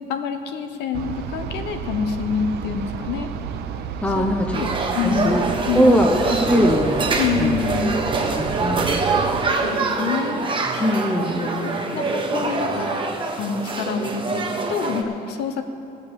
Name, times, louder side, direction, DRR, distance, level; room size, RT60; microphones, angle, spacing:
voice 1, 0.1-3.3 4.2-4.3 4.5-5.3 5.7-6.1 7.2-7.9 9.6-10.5 11.6-12.9 13.4-15.6, left 6 dB, 85° left, 7 dB, 1.0 m, -26 dB
sound 1, 0.9-9.5, right 8 dB, 75° right, 0.7 m, -31 dB
voice 2, 4.0-4.6 5.0-5.5 5.7-7.1 7.4-7.5 8.3-9.0 10.8-11.8, equal, 5° left, 2 dB, 0.9 m, -21 dB
sound 2, 4.5-15.0, right 3 dB, 30° right, 1.3 m, -25 dB
16.0 x 6.9 x 7.0 m, 2.5 s
cardioid pair, 110°, 17 cm